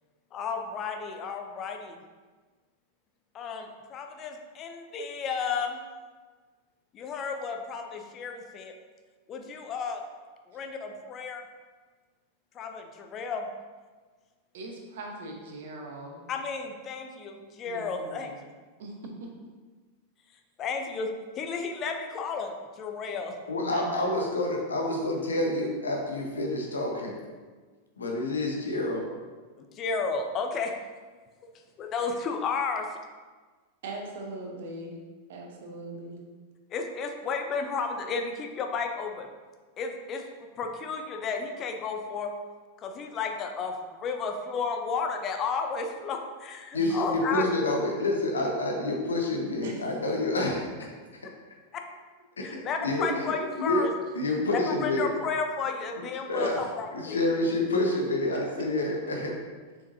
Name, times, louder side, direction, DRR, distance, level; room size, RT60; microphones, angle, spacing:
voice 1, 0.3-2.0 3.3-5.8 6.9-8.7 9.3-10.0 10.5-11.4 12.5-13.5 16.3-18.3 20.6-23.3 29.6-30.7 31.8-32.9 36.7-39.3 39.8-40.2 40.6-42.3 42.8-47.5 52.4-53.9 54.7-57.2, left 5 dB, 30° left, 4 dB, 0.7 m, -32 dB
voice 2, 14.5-16.2 17.6-18.4 18.8-19.3 23.6-24.0 33.8-35.0 35.3-36.2 46.8-47.0 49.6-49.8, right 2 dB, 55° right, 1 dB, 1.0 m, -40 dB
voice 3, 23.5-27.1 28.0-29.0 46.7-50.9 51.2-51.3 52.4-53.9 54.1-55.1 56.0-56.5 56.9-59.3, left 2 dB, 70° left, 1 dB, 1.0 m, -28 dB
6.7 x 5.0 x 2.7 m, 1.4 s
figure-of-eight pair, 90°, 0 cm